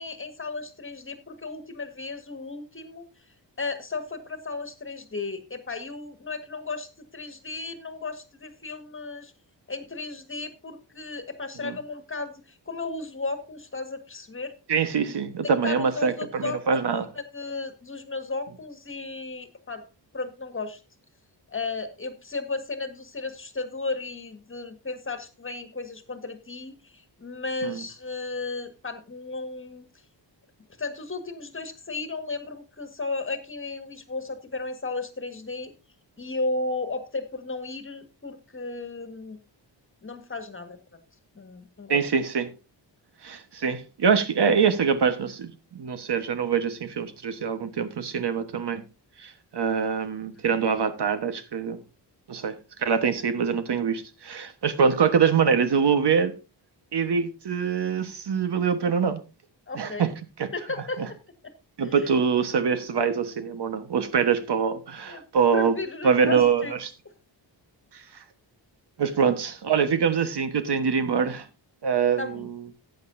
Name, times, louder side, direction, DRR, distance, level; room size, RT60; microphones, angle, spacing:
voice 1, 0.0-3.0 3.6-9.3 9.7-14.5 15.4-16.6 17.1-19.8 20.1-20.8 21.5-29.8 30.8-35.7 36.2-39.4 40.0-41.0 41.3-42.0 59.7-60.1 60.5-61.2 61.4-61.5 61.8-62.1 65.1-65.2 65.5-66.8 72.2-72.5, left 3 dB, 25° left, 1.7 m, -34 dB
voice 2, 14.7-17.1 27.6-27.8 41.9-42.5 43.2-48.8 49.2-51.8 52.3-56.3 56.9-59.2 59.7-60.1 60.4-60.5 61.0-61.1 61.8-65.8 66.0-66.9 67.9-68.0 69.0-71.5 71.8-72.5, right 6 dB, 65° right, 1.3 m, -24 dB
14.5 x 9.3 x 2.7 m
wide cardioid pair, 105°, 44 cm